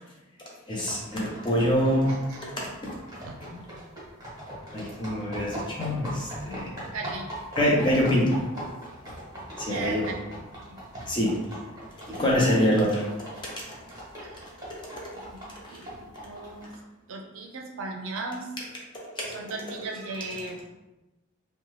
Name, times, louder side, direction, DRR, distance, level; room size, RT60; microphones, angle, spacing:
voice 1, 0.7-2.2 2.6-3.0 4.7-6.8 7.6-8.4 9.6-10.0 11.1-11.4 12.1-13.3 13.7-13.8, equal, 25° left, -4 dB, 0.6 m, -25 dB
sound 1, 0.9-16.7, right 1 dB, 20° right, 1.0 m, -41 dB
voice 2, 2.1-2.5 2.9-3.0 3.2-3.4 6.9-7.3 9.7-10.2 10.7-10.8 14.2-14.5 15.2-15.4 15.7-16.7 17.1-18.6 19.3-20.6, right 3 dB, 75° right, 2 dB, 0.4 m, -37 dB
2.8 x 2.1 x 3.1 m, 1.0 s
head